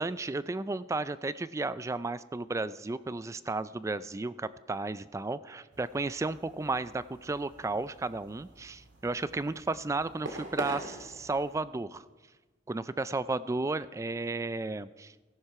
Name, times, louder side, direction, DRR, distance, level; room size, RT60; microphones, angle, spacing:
voice 1, 0.0-12.0 12.7-15.1, right 3 dB, 15° right, 16 dB, 0.3 m, -33 dB
sound 1, 5.7-11.6, right 2 dB, 85° right, 1.9 m, -45 dB
16.5 x 11.5 x 4.7 m, 1.3 s
head